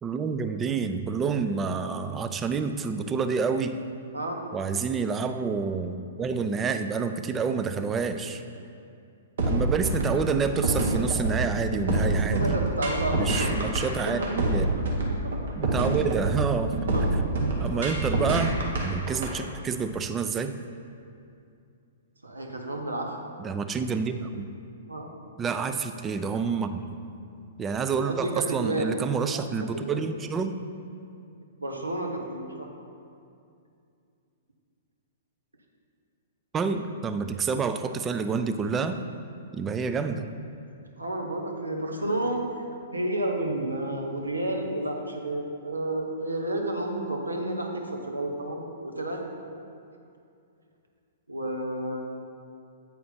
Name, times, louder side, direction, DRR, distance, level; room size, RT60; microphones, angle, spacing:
voice 1, 0.0-3.8 4.5-8.4 9.5-12.6 13.1-14.7 15.6-16.8 17.6-20.6 23.4-24.5 25.4-26.8 27.6-30.6 36.5-39.0 39.5-40.3, right 5 dB, 20° right, 8 dB, 0.3 m, -28 dB
sound 1, 9.4-19.3, right 2 dB, 60° right, 1.2 m, -26 dB
voice 2, 12.3-13.7 14.1-14.3 15.2-15.4 16.9-17.1 17.7-17.9 22.2-23.1 24.9-25.1 28.0-28.9 29.3-29.4 29.7-30.0 31.6-32.7 41.0-42.4 42.9-49.2 51.3-52.0, right 1 dB, 85° right, 1 dB, 0.9 m, -31 dB
8.4 x 4.2 x 4.1 m, 2.5 s
figure-of-eight pair, 110°, 0 cm